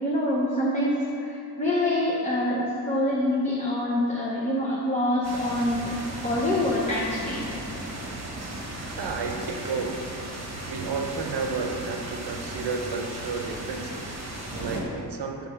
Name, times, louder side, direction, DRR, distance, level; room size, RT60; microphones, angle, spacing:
voice 1, 0.0-6.0 6.2-7.5, left 1 dB, 15° left, -6 dB, 0.7 m, -25 dB
sound 1, 5.2-14.8, right 1 dB, 40° right, 1.1 m, -36 dB
voice 2, 9.0-10.0 10.6-15.5, right 4 dB, 65° right, 4 dB, 0.7 m, -32 dB
7.1 x 3.9 x 5.6 m, 2.8 s
wide cardioid pair, 160°, 44 cm